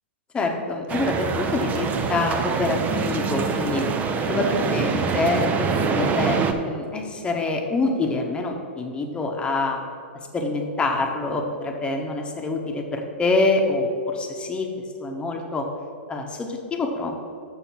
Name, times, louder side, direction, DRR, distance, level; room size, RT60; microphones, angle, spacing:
voice 1, 0.3-3.9 4.3-9.8 10.3-14.7 15.0-15.7 16.1-17.1, left 3 dB, 15° left, 3 dB, 1.1 m, -26 dB
sound 1, 0.9-6.5, right 5 dB, 25° right, 0.7 m, -25 dB
6.9 x 6.4 x 6.0 m, 2.4 s
hypercardioid pair, 120°, 6 cm